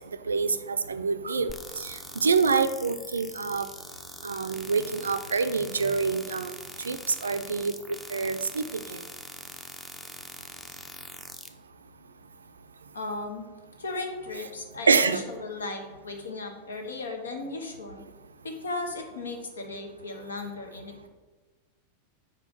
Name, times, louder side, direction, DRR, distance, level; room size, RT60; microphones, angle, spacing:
voice 1, 0.3-3.6 4.2-6.5 6.8-7.7 8.1-9.0 14.9-15.2, right 4 dB, 75° right, 10 dB, 0.4 m, -26 dB
sound 1, 1.5-11.5, equal, 5° left, 0.6 m, -43 dB
voice 2, 12.9-13.4 13.8-18.0 18.4-21.1, left 3 dB, 70° left, 4 dB, 1.0 m, -36 dB
5.0 x 4.5 x 6.0 m, 1.3 s
figure-of-eight pair, 90°, 0 cm